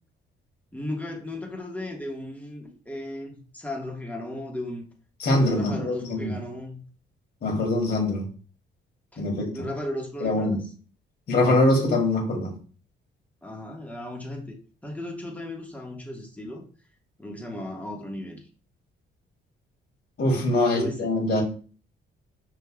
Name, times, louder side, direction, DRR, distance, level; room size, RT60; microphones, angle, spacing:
voice 1, 0.7-4.8 5.4-6.8 9.1-9.2 9.5-10.6 13.4-14.6 14.8-16.6 17.2-18.4 20.5-21.1, left 1 dB, 5° left, -1 dB, 1.4 m, -35 dB
voice 2, 5.2-6.3 7.4-8.3 9.2-9.7 10.2-10.6 11.3-12.5 20.2-21.4, left 2 dB, 55° left, 0 dB, 2.0 m, -23 dB
5.4 x 3.6 x 2.3 m, 0.40 s
cardioid pair, 90°, 20 cm